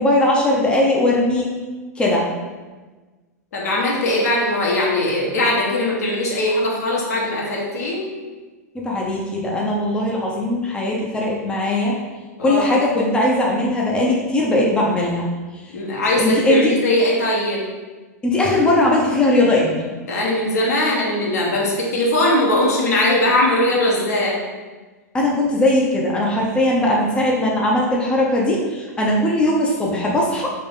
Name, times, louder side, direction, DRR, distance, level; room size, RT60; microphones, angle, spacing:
voice 1, 0.0-1.5 2.0-2.3 8.8-11.9 12.4-15.3 16.2-16.7 18.2-19.7 25.1-30.5, left 1 dB, 10° left, -3 dB, 0.7 m, -19 dB
voice 2, 3.5-8.0 12.4-12.7 15.7-17.6 20.1-24.4, left 1 dB, 70° left, -3 dB, 1.1 m, -20 dB
3.8 x 2.9 x 4.0 m, 1.3 s
hypercardioid pair, 100°, 9 cm